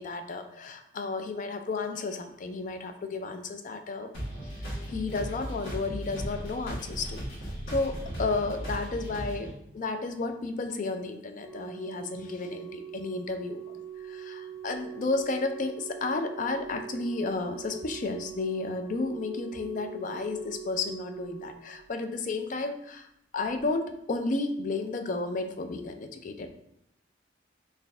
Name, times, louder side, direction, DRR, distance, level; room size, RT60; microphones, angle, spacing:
voice 1, 0.0-4.1 4.6-13.6 14.0-23.1 23.3-26.5, left 3 dB, 45° left, 7 dB, 0.3 m, -32 dB
sound 1, 4.1-9.5, equal, 90° left, 1.5 m, -37 dB
Organ, 11.4-22.3 23.4-23.6, right 9 dB, 10° right, 1.2 m, -43 dB
4.1 x 2.6 x 3.2 m, 0.78 s
head